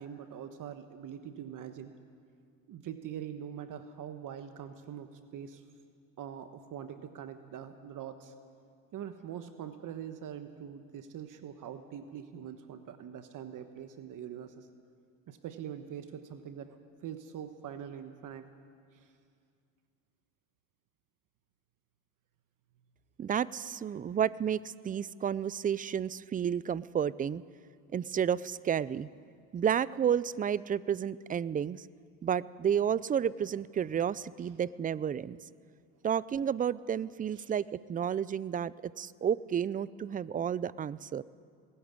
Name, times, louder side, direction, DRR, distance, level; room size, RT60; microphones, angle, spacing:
voice 1, 0.0-1.9 2.7-5.6 6.2-8.3 8.9-14.7 15.3-18.5 18.9-19.1 37.3-37.5, right 9 dB, 50° right, 9 dB, 1.2 m, -43 dB
voice 2, 23.2-27.4 27.9-29.1 29.5-31.9 32.2-35.4 36.0-41.2, right 8 dB, 20° right, 20 dB, 0.4 m, -31 dB
19.5 x 14.0 x 9.6 m, 2.3 s
supercardioid pair, 95°, 40 cm